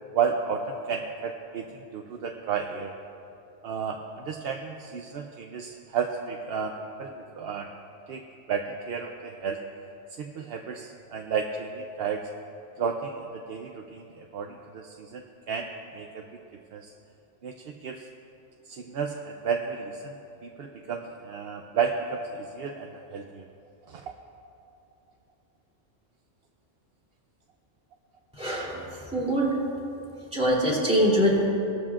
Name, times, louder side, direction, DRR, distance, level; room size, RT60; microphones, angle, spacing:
voice 1, 0.1-2.9 3.6-7.7 8.1-9.6 10.2-12.3 12.8-16.4 16.7-16.9 17.4-17.5 17.8-18.1 18.7-23.5 23.9-24.0, right 6 dB, 60° right, 3 dB, 0.8 m, -32 dB
voice 2, 28.4-28.8 29.1-29.6 30.3-31.5, equal, 5° right, -6 dB, 2.9 m, -23 dB
18.5 x 13.0 x 2.4 m, 2.7 s
omnidirectional pair, 1.3 m